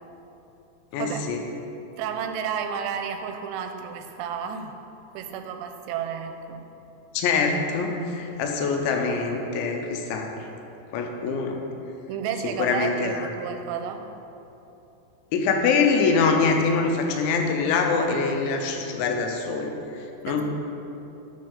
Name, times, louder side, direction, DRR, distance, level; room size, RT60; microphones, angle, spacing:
voice 1, 0.9-1.4 7.1-10.3 10.9-11.6 12.6-13.3 15.3-19.8 20.2-20.4, left 4 dB, 85° left, 3 dB, 3.1 m, -24 dB
voice 2, 2.0-4.7 5.1-6.6 12.1-14.1 20.3-20.4, right 7 dB, 85° right, 6 dB, 2.9 m, -31 dB
11.0 x 4.4 x 5.5 m, 2.9 s
omnidirectional pair, 5.1 m